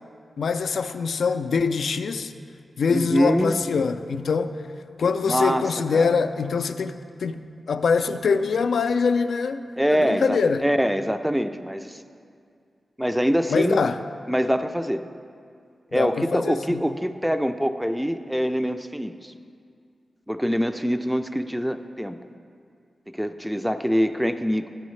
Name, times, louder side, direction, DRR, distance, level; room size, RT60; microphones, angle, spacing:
voice 1, 0.4-2.3 2.8-4.6 5.0-9.6 9.9-10.6 13.5-14.0 15.9-16.8, left 5 dB, 80° left, 9 dB, 0.3 m, -24 dB
voice 2, 2.9-3.6 5.2-5.7 5.9-6.2 9.8-12.0 13.0-13.8 14.3-15.0 15.9-19.3 20.3-22.2 23.1-24.7, equal, 5° right, 9 dB, 0.4 m, -24 dB
10.5 x 8.7 x 3.2 m, 2.3 s
cardioid pair, 55°, 0 cm